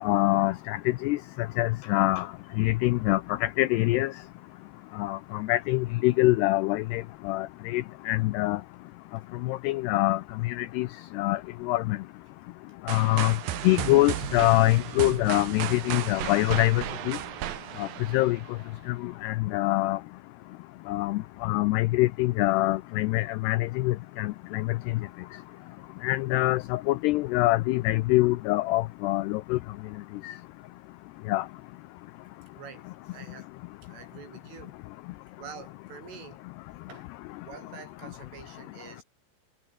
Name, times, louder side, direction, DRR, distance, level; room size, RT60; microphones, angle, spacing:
voice 1, 0.0-0.8 1.0-1.2 1.6-2.3 2.6-4.1 5.0-8.6 9.4-10.9 11.2-12.0 12.9-13.3 13.6-17.2 17.8-17.9 18.1-18.4 19.0-20.0 20.9-24.8 26.0-29.6 30.2-30.3 31.3-31.4, left 19 dB, 85° left, 2.3 m, -25 dB
sound 1, 12.9-18.8, right 12 dB, 60° right, 2.7 m, -34 dB
voice 2, 32.6-32.9 33.1-33.5 33.8-34.8 35.4-36.4 36.9-37.1 37.5-39.0, right 7 dB, 90° right, 7.5 m, -46 dB
omnidirectional pair, 5.5 m